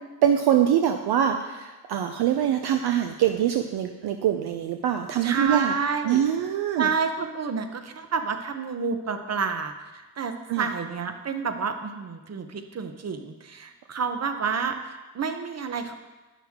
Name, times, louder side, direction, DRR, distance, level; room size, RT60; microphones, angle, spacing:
voice 1, 0.2-5.7 6.0-6.9 10.5-10.6, right 9 dB, 60° right, 6 dB, 0.6 m, -23 dB
voice 2, 5.2-6.2 6.8-15.9, right 5 dB, 35° right, 7 dB, 0.9 m, -29 dB
9.2 x 5.7 x 3.6 m, 1.2 s
supercardioid pair, 60°, 45 cm